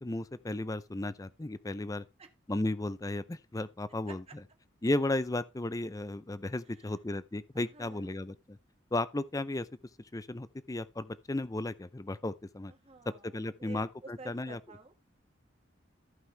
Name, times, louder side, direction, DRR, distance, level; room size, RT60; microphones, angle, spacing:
voice 1, 0.0-2.0 2.5-4.4 4.8-8.6 8.9-9.7 10.1-12.7 13.2-14.6, left 2 dB, 20° left, 0.5 m, -34 dB
voice 2, 7.5-8.1 12.8-13.3 13.6-13.9 14.2-14.9, right 3 dB, 30° right, 1.4 m, -50 dB
14.0 x 5.5 x 3.3 m
head